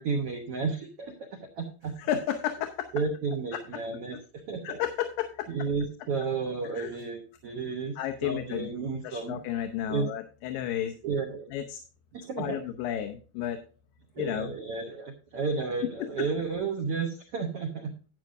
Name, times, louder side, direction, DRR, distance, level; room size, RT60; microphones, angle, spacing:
voice 1, 0.0-1.9 2.9-4.2 4.5-4.8 5.5-7.9 8.2-9.4 9.9-10.1 11.0-11.4 12.1-12.6 14.2-17.9, right 4 dB, 85° right, 4 dB, 1.3 m, -32 dB
voice 2, 2.0-2.9 4.6-5.5 6.7-6.9 8.0-8.7 9.0-10.9 11.5-11.8 12.4-13.6 14.2-14.5 16.0-16.1, left 11 dB, 75° left, 6 dB, 2.4 m, -32 dB
12.0 x 9.4 x 2.6 m, 0.37 s
omnidirectional pair, 4.3 m